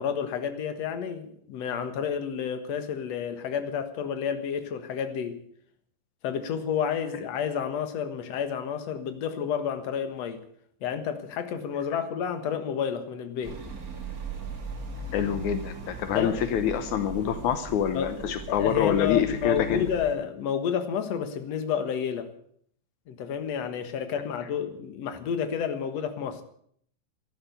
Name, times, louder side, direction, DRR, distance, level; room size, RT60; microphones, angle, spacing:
voice 1, 0.0-5.4 6.2-10.4 10.8-13.6 16.1-16.4 17.9-22.3 23.1-26.4, left 7 dB, 60° left, 8 dB, 1.9 m, -30 dB
sound 1, 13.4-20.1, right 3 dB, 40° right, 1.3 m, -39 dB
voice 2, 15.1-19.9, left 9 dB, 85° left, 10 dB, 1.7 m, -26 dB
13.5 x 12.0 x 8.2 m, 0.64 s
omnidirectional pair, 4.8 m